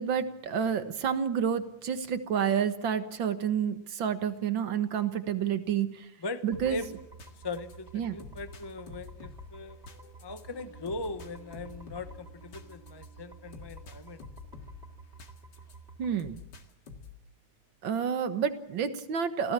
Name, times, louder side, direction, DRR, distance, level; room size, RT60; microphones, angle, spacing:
voice 1, 0.0-6.1 6.4-6.8 7.9-8.2 16.0-16.4 17.8-19.5, right 8 dB, 80° right, 10 dB, 2.1 m, -29 dB
voice 2, 6.2-6.9 7.4-9.8 10.2-14.2, left 2 dB, 20° left, 9 dB, 0.7 m, -39 dB
sound 1, 6.5-15.8 16.2-17.3, left 5 dB, 65° left, 2.5 m, -49 dB
sound 2, 6.5-16.2, right 4 dB, 35° right, 3.3 m, -51 dB
27.5 x 17.0 x 7.5 m, 0.85 s
omnidirectional pair, 2.1 m